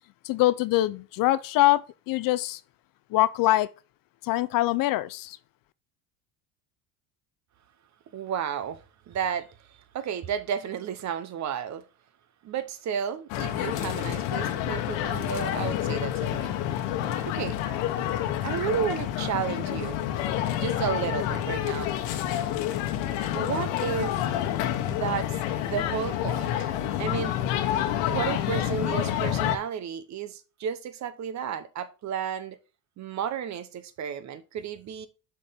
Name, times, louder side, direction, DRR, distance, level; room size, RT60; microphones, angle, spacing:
voice 1, 0.2-2.6 3.1-3.7 4.2-5.4, left 16 dB, 50° left, 0.5 m, -24 dB
voice 2, 8.1-11.8 12.4-16.6 17.0-17.6 18.4-20.0 20.5-21.9 23.3-24.2 24.9-26.7 27.0-27.4 28.1-32.6 33.0-35.1, right 8 dB, 40° right, 0.8 m, -32 dB
sound 1, 13.3-29.6, left 11 dB, 75° left, 1.2 m, -28 dB
7.2 x 4.5 x 3.4 m
supercardioid pair, 115°, 43 cm